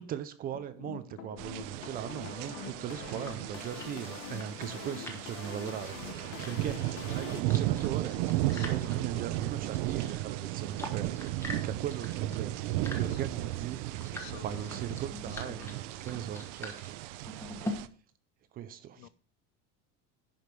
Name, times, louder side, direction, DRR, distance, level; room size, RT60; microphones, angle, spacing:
voice 1, 0.0-12.6 12.9-13.8 14.1-17.5 18.5-19.1, right 10 dB, 25° right, 0.4 m, -39 dB
sound 1, 0.5-7.4, left 9 dB, 35° left, 0.9 m, -45 dB
sound 2, 1.4-17.9, right 15 dB, 75° right, 0.7 m, -35 dB
sound 3, 2.5-17.7, left 1 dB, 5° left, 1.2 m, -46 dB
voice 2, 8.1-9.2 13.1-13.2 14.1-15.0 15.3-15.8 19.0-19.1, left 17 dB, 65° left, 0.6 m, -50 dB
11.0 x 5.1 x 6.0 m
cardioid pair, 180°, 37 cm